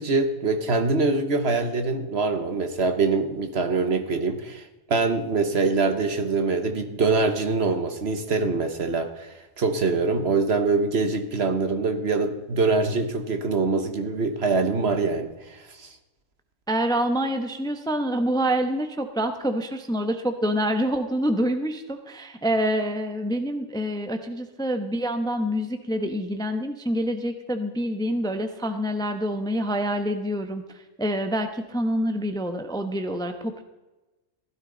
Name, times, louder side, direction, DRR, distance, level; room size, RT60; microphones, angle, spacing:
voice 1, 0.0-15.9, right 3 dB, 55° right, 7 dB, 1.4 m, -24 dB
voice 2, 16.7-30.6 31.0-33.6, equal, 5° left, 7 dB, 0.8 m, -26 dB
15.5 x 13.0 x 3.9 m, 1.1 s
omnidirectional pair, 1.3 m